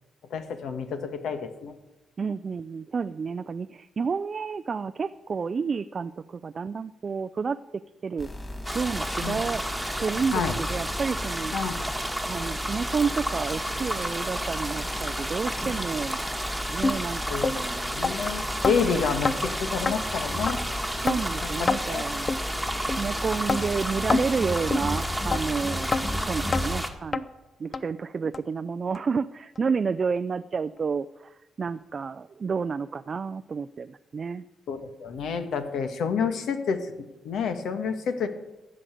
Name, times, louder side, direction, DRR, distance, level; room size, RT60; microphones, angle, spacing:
voice 1, 0.3-1.7 9.2-9.4 10.3-10.6 11.5-11.8 17.3-17.5 17.9-20.6 21.4-22.1 22.5-22.7 34.7-38.3, left 6 dB, 75° left, 8 dB, 1.4 m, -29 dB
voice 2, 2.2-7.6 8.0-8.3 8.7-9.6 10.0-10.4 10.7-11.5 12.3-16.2 16.7-18.0 21.0-22.3 22.6-22.7 23.0-27.3 27.6-34.5, right 5 dB, 40° right, 11 dB, 0.4 m, -30 dB
sound 1, 8.2-26.8, left 1 dB, 15° left, 2.9 m, -36 dB
sound 2, 8.6-26.9, right 1 dB, ahead, 1.5 m, -32 dB
sound 3, 16.8-17.0 17.4-17.6 18.0-18.1 18.6-18.8 19.2-19.4 19.8-20.0 20.5-20.6 21.1-21.2 21.7-21.8 22.3-22.4 22.9-23.0 23.5-23.6 24.1-24.3 24.7-24.8 25.3-25.4 25.9-26.0 26.5-26.6 27.1-27.2 27.7-27.8 28.3-28.4 28.9-29.0 29.5-29.6, left 4 dB, 35° left, 0.6 m, -25 dB
15.0 x 6.5 x 9.1 m, 1.0 s
cardioid pair, 110°, 0 cm